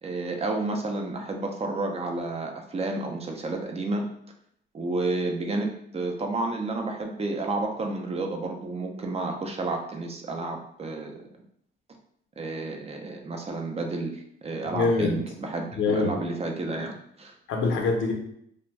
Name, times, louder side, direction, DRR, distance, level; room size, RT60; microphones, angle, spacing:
voice 1, 0.0-4.0 4.7-5.7 5.9-11.3 12.4-17.3, right 2 dB, 30° right, 2 dB, 0.5 m, -31 dB
voice 2, 14.7-15.2 15.7-16.2 17.5-18.1, left 3 dB, 75° left, 2 dB, 0.6 m, -24 dB
2.6 x 2.1 x 3.2 m, 0.70 s
cardioid pair, 90°, 20 cm